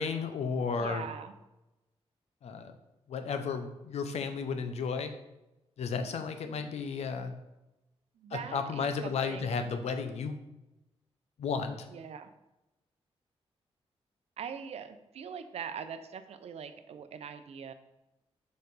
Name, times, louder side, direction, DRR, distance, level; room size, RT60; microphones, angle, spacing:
voice 1, 0.0-1.1 2.4-2.7 3.1-5.1 5.8-7.4 8.3-10.4 11.4-11.8, left 5 dB, 85° left, 8 dB, 0.7 m, -33 dB
voice 2, 0.8-1.3 8.2-9.8 11.9-12.3 14.4-17.7, right 7 dB, 75° right, 10 dB, 0.6 m, -42 dB
6.6 x 5.2 x 4.0 m, 0.97 s
wide cardioid pair, 140°, 11 cm